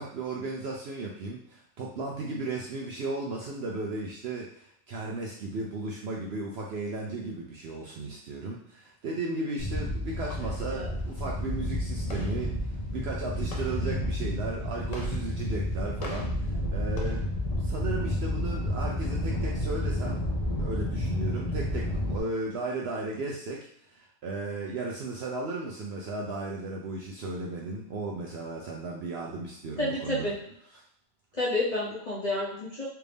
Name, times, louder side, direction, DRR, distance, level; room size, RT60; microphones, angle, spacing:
voice 1, 0.0-12.5 12.9-17.3 17.6-20.2 20.6-30.3, right 2 dB, 60° right, -2 dB, 0.7 m, -35 dB
sound 1, 9.6-22.2, left 1 dB, 85° left, 0.3 m, -30 dB
voice 2, 29.8-30.4 31.3-32.9, left 1 dB, 40° left, -6 dB, 0.8 m, -30 dB
3.3 x 2.6 x 3.4 m, 0.68 s
omnidirectional pair, 1.4 m